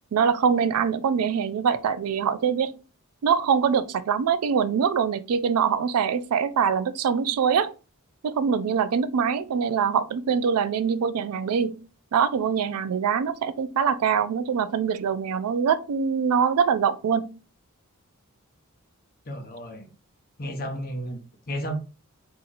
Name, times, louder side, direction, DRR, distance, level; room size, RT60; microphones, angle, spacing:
voice 1, 0.1-2.8 3.2-7.7 8.2-11.9 12.1-17.4, right 7 dB, 90° right, 0.4 m, -24 dB
voice 2, 19.3-19.9 20.4-21.2 21.5-21.8, equal, 45° left, 0.7 m, -32 dB
2.8 x 2.5 x 3.8 m
head